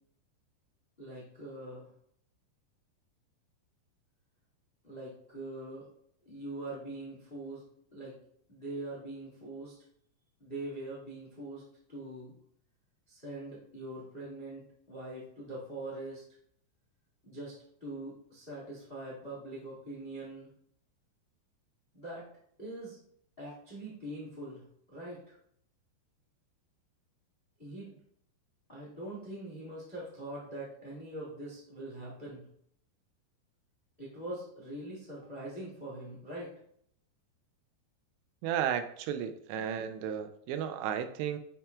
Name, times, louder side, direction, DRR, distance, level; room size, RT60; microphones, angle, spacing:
voice 1, 1.0-1.9 4.8-5.9 6.2-7.6 7.9-8.2 8.5-9.7 10.4-11.6 11.9-12.3 13.1-16.2 17.2-20.5 21.9-22.3 22.6-23.0 23.4-24.7 24.9-25.4 27.6-28.0 28.7-32.5 34.0-36.5, right 1 dB, 35° left, -4 dB, 0.8 m, -43 dB
voice 2, 38.4-41.4, right 9 dB, 85° right, 10 dB, 2.8 m, -33 dB
9.7 x 5.9 x 2.4 m, 0.68 s
omnidirectional pair, 4.9 m